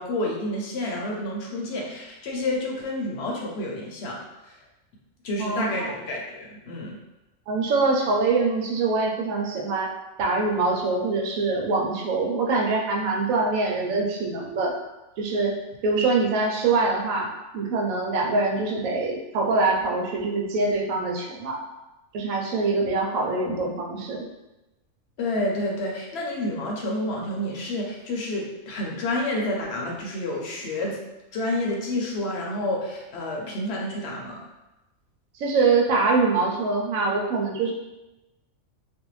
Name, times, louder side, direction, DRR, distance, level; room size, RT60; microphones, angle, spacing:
voice 1, 0.0-4.6 5.2-7.0 25.2-31.0 31.3-34.4, left 1 dB, 60° left, -1 dB, 0.7 m, -29 dB
voice 2, 5.4-5.9 7.5-9.9 10.2-14.7 15.2-15.5 15.8-21.6 22.1-24.2 35.4-37.7, right 3 dB, 90° right, -1 dB, 1.0 m, -24 dB
2.5 x 2.1 x 3.0 m, 1.0 s
omnidirectional pair, 1.4 m